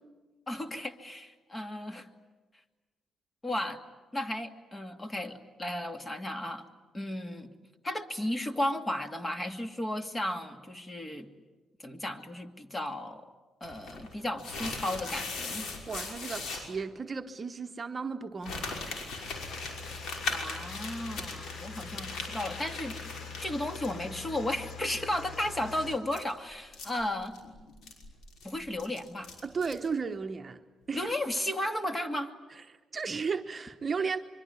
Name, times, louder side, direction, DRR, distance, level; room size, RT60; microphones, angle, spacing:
voice 1, 0.5-2.1 3.4-3.8 4.1-6.7 6.9-7.5 7.8-11.3 11.8-13.3 13.6-15.7 20.3-23.0 23.4-27.3 28.4-29.3 30.9-32.3, left 1 dB, 20° left, 2.3 m, -34 dB
sound 1, 13.6-16.6 18.4-24.2 24.5-24.6 25.8-29.9, left 3 dB, 75° left, 5.7 m, -39 dB
voice 2, 15.9-18.8 29.4-30.6 30.9-31.1 32.7-34.2, right 5 dB, 35° right, 1.0 m, -34 dB
sound 2, 19.1-26.0, left 5 dB, 55° left, 3.3 m, -44 dB
25.5 x 23.5 x 9.6 m
cardioid pair, 90°, 0 cm